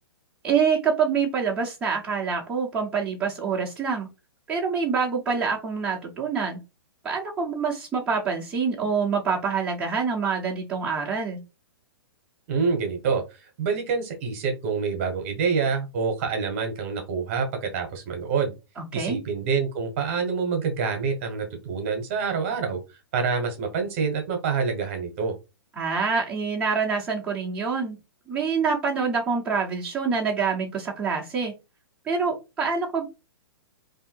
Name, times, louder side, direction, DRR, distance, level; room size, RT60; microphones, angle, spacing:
voice 1, 0.4-4.1 4.5-6.6 7.0-11.4 18.8-19.2 25.8-28.0 28.3-31.5 32.0-33.1, right 5 dB, 5° right, -7 dB, 0.8 m, -26 dB
voice 2, 12.5-13.2 13.6-18.5 18.9-22.8 23.1-25.3, right 5 dB, 30° right, 5 dB, 1.1 m, -26 dB
3.3 x 2.7 x 4.3 m, 0.26 s
hypercardioid pair, 170°, 13 cm